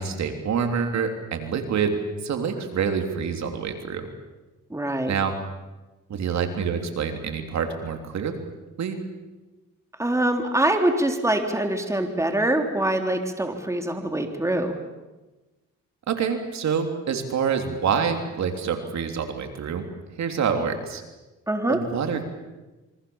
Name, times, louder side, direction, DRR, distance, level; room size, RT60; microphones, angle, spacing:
voice 1, 0.0-4.1 5.1-5.3 6.1-8.3 8.8-9.0 16.1-19.8 20.2-21.0 21.7-22.2, right 6 dB, 65° right, 5 dB, 3.4 m, -26 dB
voice 2, 4.7-5.1 10.0-14.8 21.5-21.8, right 1 dB, 10° right, 4 dB, 3.6 m, -24 dB
27.5 x 24.5 x 7.3 m, 1.1 s
cardioid pair, 90°, 30 cm